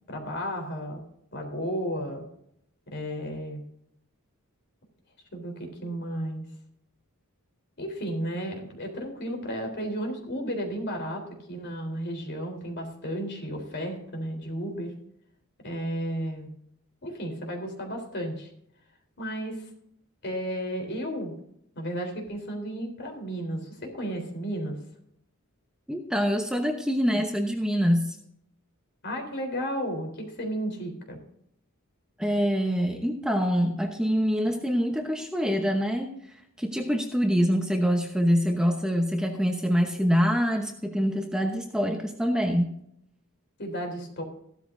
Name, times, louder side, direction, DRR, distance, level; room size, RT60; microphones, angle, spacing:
voice 1, 0.1-1.0 1.3-2.2 2.9-3.6 5.3-6.5 7.8-14.9 15.6-16.5 17.0-18.5 19.2-19.7 20.2-21.3 21.8-24.8 29.0-31.2 43.6-44.2, equal, 50° left, 3 dB, 3.7 m, -33 dB
voice 2, 25.9-28.2 32.2-42.7, equal, 5° right, 3 dB, 0.9 m, -25 dB
15.0 x 13.0 x 2.6 m, 0.73 s
head